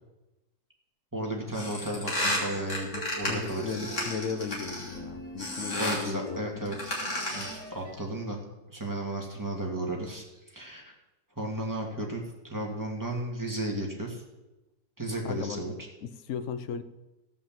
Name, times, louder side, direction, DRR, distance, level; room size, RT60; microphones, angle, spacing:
voice 1, 1.1-3.8 5.8-6.9 7.3-10.2 10.5-10.9 11.4-14.2 15.0-15.7, right 1 dB, 10° right, -1 dB, 2.0 m, -34 dB
sound 1, 1.5-5.0 5.4-6.1 6.7-7.6, left 1 dB, 40° left, 3.4 m, -32 dB
sound 2, 2.0-7.9, equal, 25° left, 4.2 m, -44 dB
voice 2, 3.3-6.4 15.2-15.6 16.0-16.8, left 6 dB, 60° left, 11 dB, 0.8 m, -36 dB
16.0 x 5.5 x 7.4 m, 1.0 s
omnidirectional pair, 2.0 m